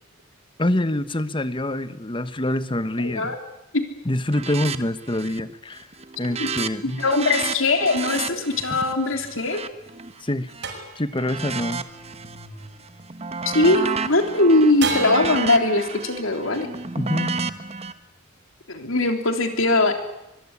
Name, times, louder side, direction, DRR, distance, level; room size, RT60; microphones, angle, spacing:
voice 1, 0.6-3.3 4.0-5.9 6.2-7.0 8.7-8.8 10.2-10.5 11.0-11.8 17.0-17.4, left 1 dB, 25° left, 13 dB, 1.1 m, -25 dB
voice 2, 3.0-3.4 3.7-3.8 6.4-6.5 6.8-9.6 13.5-16.7 18.7-19.9, left 2 dB, 75° left, 5 dB, 3.7 m, -21 dB
sound 1, 4.3-4.8 5.1-5.5 5.8-10.6 11.1-12.5 12.8-17.9, right 4 dB, 30° right, 1.3 m, -31 dB
sound 2, 8.5-13.8 14.8-18.2, right 4 dB, 60° right, 7.1 m, -36 dB
24.0 x 22.5 x 9.9 m, 0.92 s
head